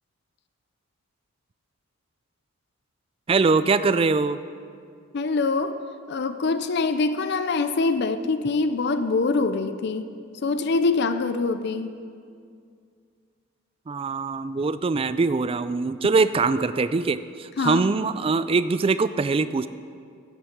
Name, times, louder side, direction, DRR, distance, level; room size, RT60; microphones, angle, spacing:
voice 1, 3.3-4.4 13.9-19.7, right 4 dB, 25° right, 14 dB, 0.3 m, -23 dB
voice 2, 5.1-5.8 6.1-10.1 10.4-12.0 17.6-17.9, left 3 dB, 55° left, 10 dB, 0.5 m, -24 dB
9.9 x 8.8 x 7.1 m, 2.3 s
head